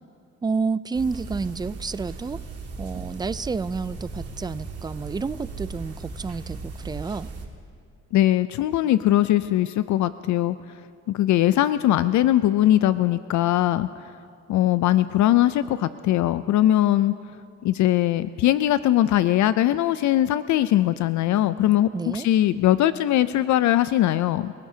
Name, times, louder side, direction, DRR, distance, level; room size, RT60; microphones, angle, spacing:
voice 1, 0.4-2.4 2.8-7.3 21.9-22.3, right 4 dB, 15° right, 16 dB, 0.3 m, -29 dB
sound 1, 0.9-7.5, right 4 dB, 50° right, 2.4 m, -37 dB
voice 2, 8.1-10.6 11.1-13.9 14.5-17.1 17.6-24.5, left 13 dB, 70° left, 14 dB, 0.5 m, -20 dB
28.5 x 17.0 x 2.8 m, 2.5 s
cardioid pair, 90°, 30 cm